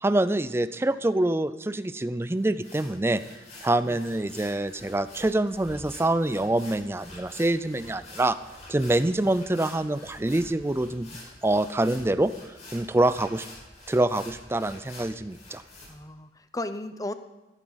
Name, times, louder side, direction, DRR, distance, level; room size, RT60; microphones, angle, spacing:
voice 1, 0.0-3.2 3.6-8.4 8.7-11.2 11.4-12.3 12.7-13.5 13.9-15.6, right 1 dB, 15° right, 14 dB, 0.4 m, -25 dB
sound 1, 2.4-15.9, left 2 dB, 40° left, 5.1 m, -47 dB
voice 2, 15.9-17.1, left 2 dB, 20° left, 11 dB, 0.7 m, -35 dB
15.5 x 14.5 x 4.1 m, 1.1 s
head